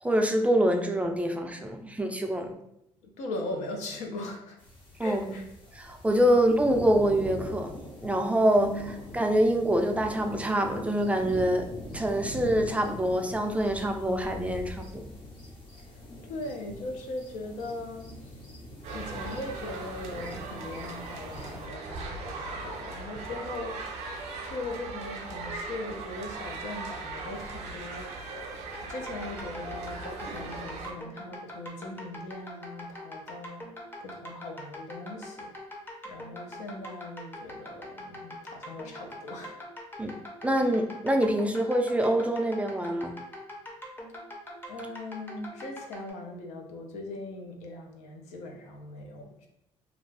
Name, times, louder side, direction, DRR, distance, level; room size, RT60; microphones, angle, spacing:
voice 1, 0.0-2.6 5.0-5.3 5.7-7.7 8.0-8.7 9.1-11.6 11.9-15.1 40.0-40.1 40.4-43.1, right 1 dB, 10° right, 3 dB, 0.3 m, -25 dB
voice 2, 3.0-4.6 5.0-5.4 8.6-9.0 16.2-18.4 18.9-28.5 28.8-33.7 34.0-35.5 36.0-39.6 44.7-49.5, left 2 dB, 80° left, 2 dB, 0.6 m, -40 dB
sound 1, 4.6-21.7, left 1 dB, 45° left, 0.9 m, -43 dB
sound 2, 18.8-30.9, right 3 dB, 75° right, 0.6 m, -39 dB
sound 3, 28.7-46.1, left 1 dB, 20° left, 0.7 m, -43 dB
2.5 x 2.3 x 3.2 m, 0.78 s
cardioid pair, 100°, 12 cm